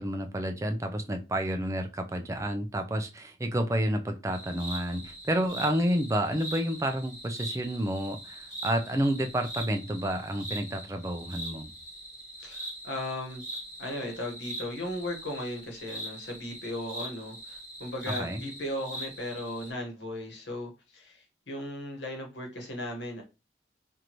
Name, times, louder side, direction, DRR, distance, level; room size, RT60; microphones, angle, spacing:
voice 1, 0.0-11.7 18.2-18.4, right 1 dB, 15° right, 0.4 m, -30 dB
sound 1, 4.3-19.7, right 1 dB, 15° left, 1.4 m, -42 dB
voice 2, 12.4-13.4 13.8-23.2, left 1 dB, 90° left, 1.2 m, -37 dB
4.6 x 2.5 x 3.0 m
head